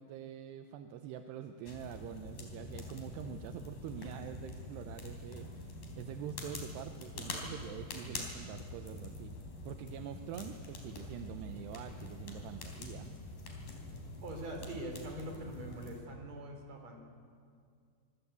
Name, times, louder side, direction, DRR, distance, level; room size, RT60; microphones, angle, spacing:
voice 1, 0.0-9.3 9.6-13.1, right 9 dB, 80° right, 7 dB, 2.9 m, -45 dB
sound 1, 1.7-16.0, left 2 dB, 55° left, 5.3 m, -45 dB
voice 2, 14.2-17.0, right 1 dB, 40° right, 3 dB, 5.2 m, -43 dB
25.5 x 25.5 x 8.3 m, 2.2 s
omnidirectional pair, 5.0 m